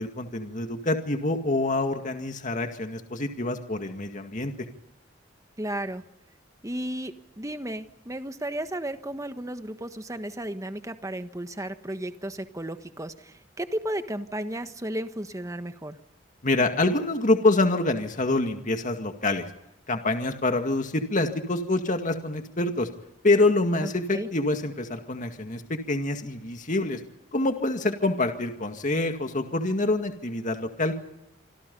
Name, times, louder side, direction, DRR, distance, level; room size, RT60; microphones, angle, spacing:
voice 1, 0.0-4.5 16.4-19.5 19.9-22.9 23.2-27.0 27.3-30.9, left 2 dB, 40° left, 6 dB, 2.1 m, -26 dB
voice 2, 5.6-6.0 6.6-16.0 23.8-24.3, right 1 dB, 15° right, 9 dB, 1.4 m, -34 dB
27.0 x 26.0 x 5.5 m, 0.84 s
head